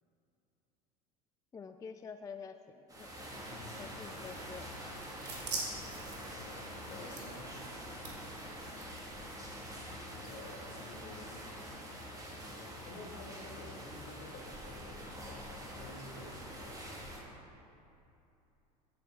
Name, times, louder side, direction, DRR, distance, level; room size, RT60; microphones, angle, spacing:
voice 1, 1.5-3.1 3.8-4.6 6.9-7.3 8.7-8.9, left 6 dB, 15° left, 8 dB, 0.3 m, -48 dB
sound 1, 2.9-17.2, equal, 15° right, 2.1 m, -46 dB
voice 2, 3.5-4.0 6.3-7.5 7.9-8.1 10.1-11.5 12.5-16.7, left 2 dB, 50° left, -2 dB, 2.3 m, -51 dB
sound 2, 4.6-9.8, right 3 dB, 85° right, 1.7 m, -46 dB
14.0 x 7.6 x 3.8 m, 2.8 s
hypercardioid pair, 80°, 20 cm